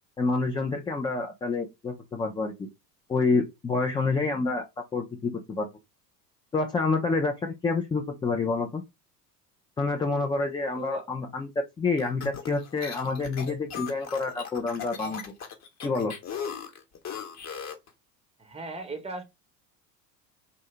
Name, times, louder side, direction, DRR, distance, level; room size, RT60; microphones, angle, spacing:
voice 1, 0.2-2.7 3.1-4.6 4.9-5.7 6.5-8.8 9.8-15.2 15.8-16.1, left 3 dB, 10° left, 0.3 m, -28 dB
voice 2, 10.8-11.1 18.4-19.2, right 3 dB, 10° right, 1.0 m, -37 dB
sound 1, 12.0-17.9, left 7 dB, 35° left, 1.1 m, -38 dB
3.9 x 2.7 x 3.3 m
hypercardioid pair, 80°, 50 cm